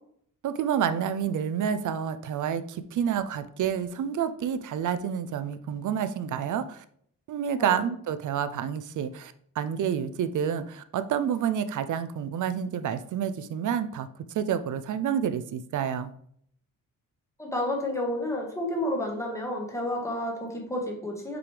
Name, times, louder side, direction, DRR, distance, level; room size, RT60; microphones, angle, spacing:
voice 1, 0.4-6.8 7.3-14.1 14.3-16.1, right 8 dB, 65° right, 11 dB, 0.5 m, -29 dB
voice 2, 7.6-7.9 17.4-21.4, left 1 dB, 10° left, 0 dB, 1.3 m, -30 dB
5.9 x 4.9 x 3.3 m, 0.65 s
wide cardioid pair, 170°, 34 cm